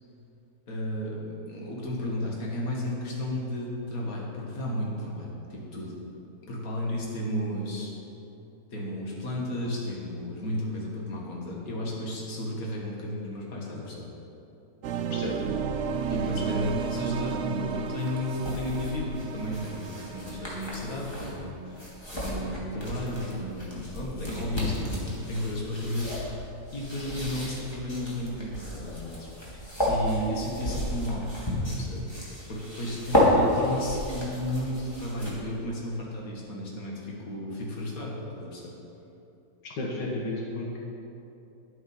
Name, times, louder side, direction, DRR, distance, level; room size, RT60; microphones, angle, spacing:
voice 1, 0.7-5.9 6.5-7.9 8.7-14.1 16.1-29.3 29.5-31.2 31.6-32.0 32.5-38.7, left 1 dB, 55° left, -3 dB, 2.3 m, -33 dB
sound 1, 14.8-21.7, right 6 dB, 75° right, 0.6 m, -33 dB
sound 2, 17.9-35.6, left 1 dB, 15° left, 2.3 m, -32 dB
voice 2, 39.6-40.8, left 2 dB, 90° left, -3 dB, 2.0 m, -33 dB
11.0 x 8.1 x 5.6 m, 2.9 s
omnidirectional pair, 1.8 m